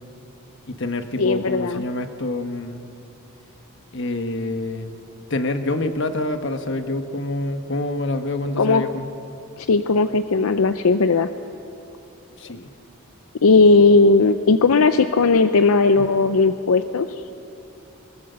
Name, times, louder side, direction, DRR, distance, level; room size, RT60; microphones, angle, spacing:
voice 1, 0.7-2.9 3.9-5.0 5.3-9.0 12.4-12.7 16.0-16.1, left 2 dB, 55° left, 7 dB, 1.2 m, -27 dB
voice 2, 1.2-1.8 8.6-8.9 9.6-11.3 13.4-17.1, left 3 dB, 80° left, 10 dB, 0.6 m, -17 dB
21.5 x 21.0 x 6.9 m, 2.8 s
head